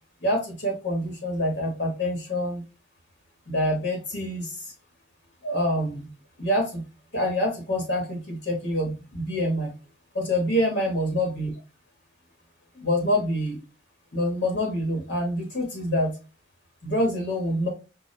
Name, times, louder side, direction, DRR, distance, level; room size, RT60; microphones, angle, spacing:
voice 1, 0.2-2.6 3.5-4.7 5.4-6.1 6.4-6.8 7.1-9.7 10.1-11.5 12.7-13.6 14.1-16.1 16.8-17.7, left 1 dB, 60° left, 1 dB, 1.3 m, -26 dB
5.7 x 2.5 x 3.2 m, 0.30 s
head